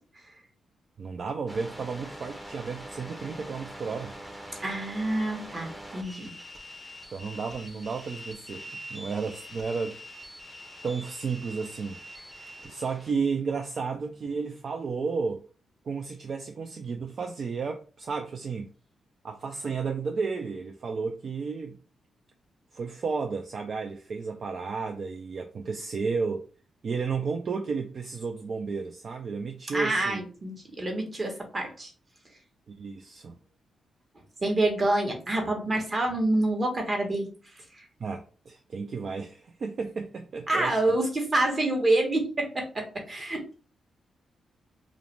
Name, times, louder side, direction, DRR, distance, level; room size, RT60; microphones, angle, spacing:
voice 1, 1.0-4.1 7.1-10.0 10.2-10.4 10.8-12.0 12.6-15.4 15.8-18.7 19.2-21.8 22.7-26.5 26.8-30.2 32.7-33.4 38.0-40.8, right 5 dB, 60° right, 0.3 m, -32 dB
sound 1, 1.5-13.1, equal, ahead, 0.6 m, -44 dB
voice 2, 4.6-6.3 29.7-31.9 34.4-37.2 40.5-43.6, right 2 dB, 40° right, 1.0 m, -27 dB
2.5 x 2.0 x 3.0 m
supercardioid pair, 60°, 0 cm